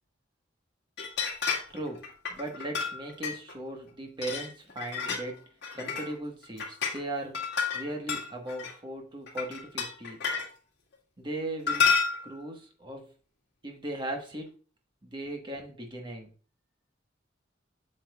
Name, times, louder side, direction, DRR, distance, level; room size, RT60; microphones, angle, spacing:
bottles clinking, 1.0-1.8 2.0-3.5 4.2-5.3 5.6-6.1 6.4-7.0 7.3-8.7 9.3-10.5 11.7-12.4, left 5 dB, 60° left, 2.0 m, -30 dB
voice 1, 1.7-5.4 5.7-7.4 7.7-10.2 11.2-11.8 12.2-13.1 13.6-14.5 15.0-16.3, right 1 dB, 25° right, 2 dB, 1.4 m, -38 dB
8.0 x 7.5 x 2.4 m, 0.38 s
head